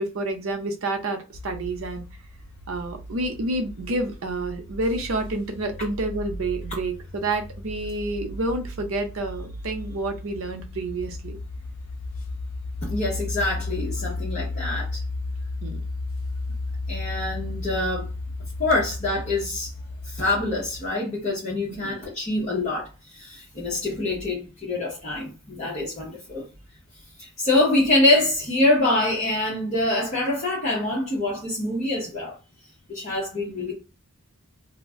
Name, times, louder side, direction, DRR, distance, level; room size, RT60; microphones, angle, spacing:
voice 1, 0.0-2.0 2.7-11.4 15.6-15.8 21.6-21.9, right 2 dB, 70° right, 0.6 m, -29 dB
sound 1, 1.3-20.9, left 2 dB, 70° left, 0.5 m, -34 dB
voice 2, 12.8-15.0 16.9-18.1 18.6-19.7 20.0-26.4 27.2-32.4 32.9-33.7, left 2 dB, 30° left, 0.8 m, -25 dB
2.4 x 2.1 x 3.5 m
head